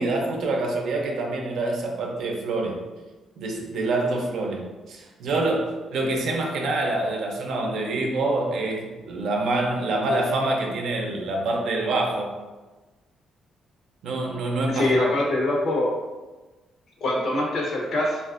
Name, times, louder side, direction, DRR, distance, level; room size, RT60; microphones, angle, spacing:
voice 1, 0.0-2.8 3.4-12.3 14.0-15.3, right 2 dB, 75° right, 1 dB, 0.5 m, -26 dB
voice 2, 14.7-15.9 17.0-18.2, left 1 dB, 65° left, -1 dB, 0.7 m, -23 dB
3.3 x 2.3 x 2.4 m, 1.2 s
cardioid pair, 90°, 0 cm